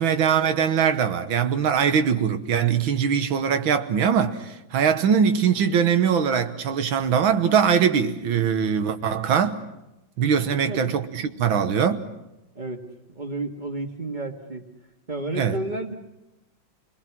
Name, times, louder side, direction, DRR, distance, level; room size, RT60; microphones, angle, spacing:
voice 1, 0.0-9.6 10.2-12.1 15.4-15.6, right 7 dB, 80° right, 2.0 m, -22 dB
voice 2, 10.5-10.9 12.6-14.7 15.1-15.9, right 2 dB, 25° right, 1.8 m, -32 dB
28.5 x 20.5 x 6.1 m
omnidirectional pair, 2.2 m